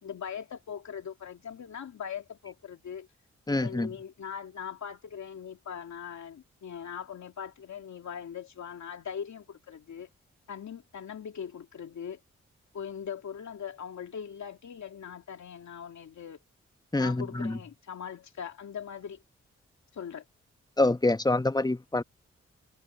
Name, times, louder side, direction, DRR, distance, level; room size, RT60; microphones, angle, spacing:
voice 1, 0.0-3.1 3.5-10.1 10.5-12.2 12.7-16.4 17.0-19.2 19.9-20.2, left 8 dB, 75° left, 2.7 m, -40 dB
voice 2, 3.5-3.9 16.9-17.6 20.8-22.0, left 2 dB, 15° left, 1.1 m, -26 dB
supercardioid pair, 40°, 29 cm